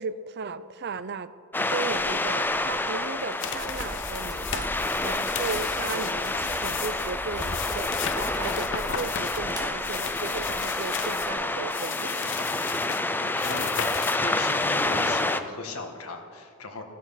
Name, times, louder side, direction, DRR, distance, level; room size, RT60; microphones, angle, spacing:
voice 1, 0.0-12.3, right 4 dB, 50° right, 14 dB, 0.5 m, -36 dB
sound 1, 1.5-15.4, left 2 dB, 10° left, 0.4 m, -28 dB
sound 2, 1.9-11.3, equal, 20° right, 2.4 m, -42 dB
sound 3, 3.4-11.3 11.7-14.2, left 9 dB, 55° left, 0.7 m, -36 dB
voice 2, 13.1-16.8, left 3 dB, 80° left, 4 dB, 1.8 m, -38 dB
14.5 x 12.5 x 5.9 m, 2.1 s
head